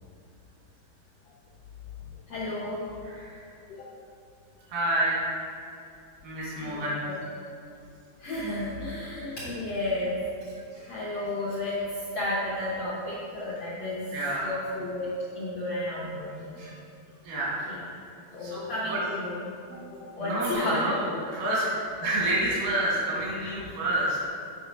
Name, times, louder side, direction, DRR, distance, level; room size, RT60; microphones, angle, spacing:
voice 1, 2.0-2.8 3.8-3.9 6.6-7.2 8.2-16.6 17.7-17.8 18.3-20.9 21.7-21.8, left 1 dB, 75° left, -7 dB, 1.4 m, -33 dB
voice 2, 3.1-3.4 4.7-5.2 6.2-7.0 14.1-14.5 16.6-16.7 17.2-17.6 18.4-18.6 18.9-19.0 20.2-21.1 21.4-21.6 22.0-24.3, right 1 dB, 90° right, -6 dB, 4.0 m, -28 dB
7.8 x 4.9 x 5.1 m, 2.6 s
omnidirectional pair, 4.2 m